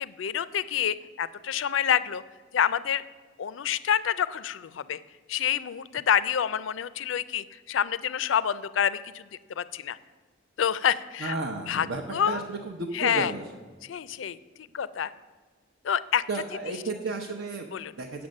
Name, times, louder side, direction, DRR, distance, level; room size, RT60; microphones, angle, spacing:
voice 1, 0.0-2.2 2.5-3.0 3.4-5.0 5.3-9.3 9.6-10.0 10.6-11.3 11.7-11.9 12.1-12.4 12.9-13.3 13.9-14.4 14.7-15.1 15.8-16.2 17.7-17.9, left 8 dB, 75° left, 17 dB, 0.4 m, -27 dB
voice 2, 11.2-13.4 16.3-17.7 18.0-18.3, right 3 dB, 75° right, 1 dB, 0.8 m, -33 dB
8.8 x 7.0 x 6.4 m, 1.4 s
head